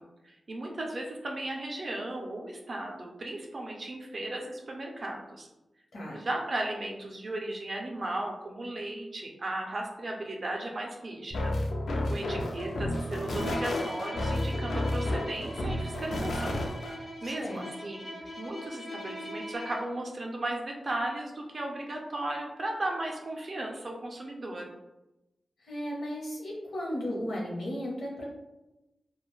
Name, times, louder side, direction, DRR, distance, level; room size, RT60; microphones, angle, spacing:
voice 1, 0.0-5.5 6.1-11.6 12.1-16.6 17.2-18.1 18.4-24.7, right 1 dB, 35° right, 0 dB, 0.4 m, -36 dB
sound 1, 11.3-16.9, left 1 dB, 85° left, 0.4 m, -31 dB
Bowed string instrument, 13.3-20.0, left 1 dB, 25° left, 0.4 m, -41 dB
voice 2, 17.2-17.6 25.6-28.3, equal, 70° left, -3 dB, 0.8 m, -35 dB
2.4 x 2.2 x 3.1 m, 0.97 s
wide cardioid pair, 175°, 0 cm